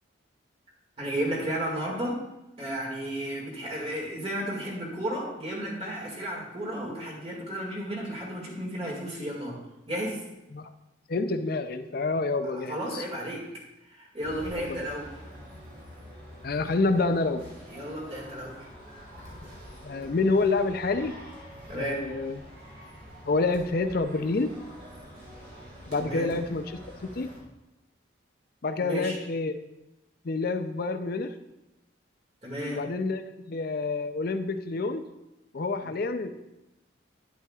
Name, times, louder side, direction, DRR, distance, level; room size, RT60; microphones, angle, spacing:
voice 1, 1.0-2.2 2.6-9.6 9.9-10.2 12.5-13.4 13.8-15.1 17.7-18.7 21.7-22.0 26.0-26.3 28.8-29.2 32.4-32.8 35.8-35.9, right 1 dB, 30° right, -3 dB, 2.1 m, -33 dB
voice 2, 11.1-13.0 14.6-14.9 16.4-17.4 19.8-21.2 21.7-22.4 23.3-24.6 25.9-27.3 28.6-29.6 30.2-31.3 32.6-35.0 35.5-36.3, left 3 dB, 50° left, 8 dB, 0.5 m, -28 dB
sound 1, 14.2-27.4, equal, 60° right, 3.3 m, -46 dB
10.0 x 8.3 x 2.4 m, 0.94 s
head